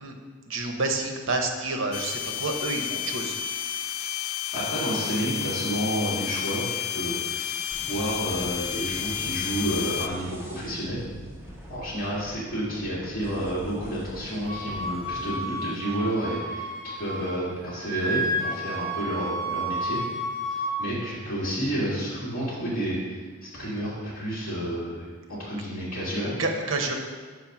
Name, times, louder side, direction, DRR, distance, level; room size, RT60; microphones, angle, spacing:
voice 1, 0.5-3.3 4.0-4.3 15.1-15.2 26.4-27.0, right 2 dB, 65° right, 4 dB, 0.9 m, -29 dB
sound 1, 1.9-10.1, left 10 dB, 85° left, 0.3 m, -31 dB
voice 2, 4.5-11.0 11.7-20.0 20.5-26.4, right 1 dB, 45° left, -9 dB, 2.0 m, -30 dB
sound 2, 7.7-15.3, equal, 10° right, 0.9 m, -44 dB
Wind instrument woodwind instrument, 14.5-17.4 17.6-20.7, equal, 45° right, 1.5 m, -31 dB
5.4 x 4.8 x 5.9 m, 1.5 s
head